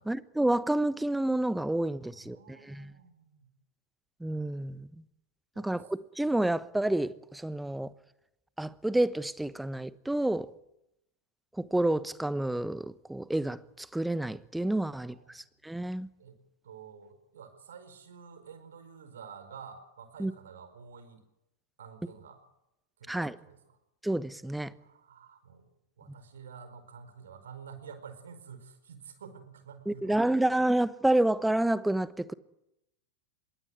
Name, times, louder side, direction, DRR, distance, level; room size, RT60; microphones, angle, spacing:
voice 1, 0.1-2.9 4.2-4.9 5.6-7.9 8.6-10.5 11.6-16.1 20.2-20.3 23.1-23.3 24.0-24.7 29.9-32.3, right 1 dB, 5° right, 1.1 m, -29 dB
voice 2, 2.0-3.5 5.5-5.9 14.8-15.5 16.2-21.2 21.8-22.4 23.0-23.8 24.8-30.5, right 6 dB, 65° right, 4.8 m, -50 dB
26.5 x 22.5 x 9.2 m
figure-of-eight pair, 90°, 0 cm